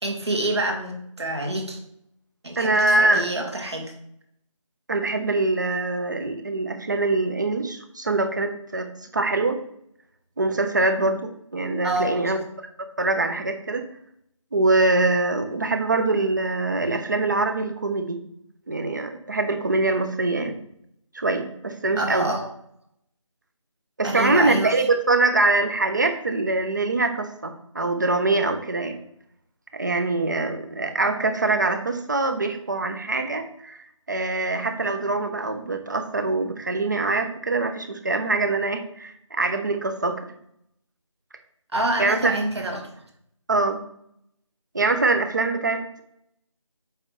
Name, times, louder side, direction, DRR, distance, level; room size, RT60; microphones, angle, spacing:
voice 1, 0.0-1.8 2.4-3.9 11.8-12.2 22.0-22.5 24.0-24.7 41.7-42.9, right 1 dB, 50° right, 2 dB, 2.0 m, -27 dB
voice 2, 2.6-3.2 4.9-9.6 10.4-12.4 13.0-13.8 14.5-18.2 18.7-20.6 21.1-22.3 24.0-29.0 29.7-40.2 42.0-42.4 43.5-43.8 44.7-46.0, right 2 dB, 35° right, 7 dB, 0.9 m, -23 dB
7.7 x 5.5 x 3.3 m, 0.72 s
figure-of-eight pair, 160°, 17 cm